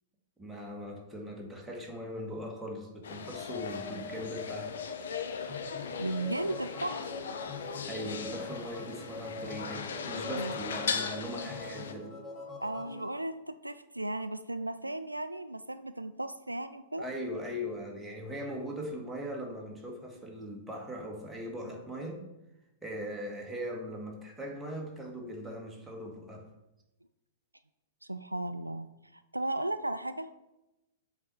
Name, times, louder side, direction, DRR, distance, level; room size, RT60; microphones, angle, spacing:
voice 1, 0.4-4.8 7.8-12.1 17.0-22.2 22.8-26.4, equal, 5° right, -1 dB, 1.6 m, -40 dB
sound 1, 3.0-11.9, left 6 dB, 60° left, 0.7 m, -39 dB
sound 2, 3.3-13.1, left 3 dB, 20° left, 1.5 m, -43 dB
voice 2, 5.9-7.1 10.3-10.5 12.6-17.1 28.0-30.3, right 1 dB, 85° right, 11 dB, 0.3 m, -35 dB
7.4 x 4.1 x 4.7 m, 0.94 s
figure-of-eight pair, 105°, 0 cm